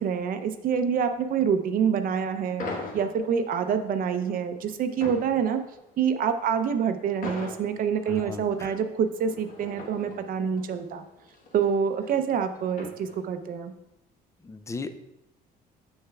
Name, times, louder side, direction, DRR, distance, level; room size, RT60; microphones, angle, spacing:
voice 1, 0.0-2.7 2.9-5.6 6.0-11.0 11.5-13.7, right 7 dB, 55° right, 8 dB, 0.6 m, -26 dB
sound 1, 2.6-13.5, left 2 dB, 55° left, 1.3 m, -42 dB
voice 2, 8.1-8.8 14.4-14.9, left 3 dB, 15° left, 10 dB, 0.4 m, -37 dB
7.2 x 6.5 x 2.3 m, 0.88 s
cardioid pair, 110°, 17 cm